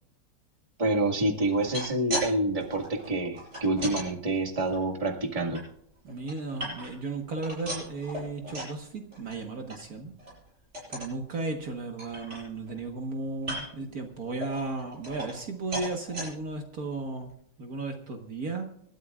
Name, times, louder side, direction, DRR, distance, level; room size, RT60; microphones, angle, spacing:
voice 1, 0.8-5.6, right 2 dB, 20° right, 3 dB, 1.8 m, -27 dB
sound 1, 1.5-2.3 2.6-4.1 4.6-5.6 6.1-7.1 7.4-8.8 9.1-9.4 9.7-9.8 10.2-10.4 10.7-11.1 11.6-11.7 12.0-12.8 13.4-13.9 14.4-15.5 15.7-16.3 16.9-17.0 17.3-17.4, equal, 40° right, 7.8 m, -37 dB
voice 2, 6.0-10.1 10.9-17.3 17.6-18.7, right 3 dB, 60° right, 4 dB, 1.8 m, -35 dB
27.5 x 13.0 x 2.4 m, 0.71 s
omnidirectional pair, 1.9 m